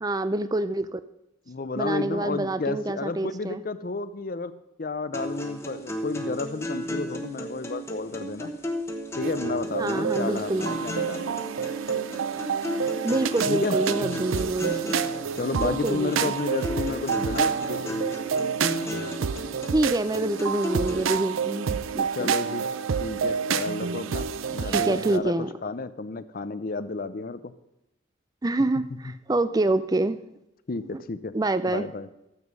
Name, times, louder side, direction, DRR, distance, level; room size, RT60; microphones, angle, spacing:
voice 1, 0.0-1.0 1.8-3.6 9.8-10.7 13.0-14.9 15.6-16.3 19.7-22.3 24.6-25.5 28.4-30.2 30.9-31.0 31.3-31.9, right 2 dB, 20° right, 14 dB, 0.4 m, -26 dB
voice 2, 1.5-4.5 4.8-8.5 9.2-11.4 13.5-13.8 15.4-18.1 22.1-22.6 23.0-25.3 25.6-27.5 30.7-31.3 31.7-32.1, left 3 dB, 45° left, 14 dB, 0.5 m, -32 dB
sound 1, 5.1-21.1, equal, 15° left, 1.1 m, -34 dB
sound 2, 9.2-25.2, right 6 dB, 80° right, 0.5 m, -29 dB
12.5 x 8.2 x 5.4 m, 0.90 s
head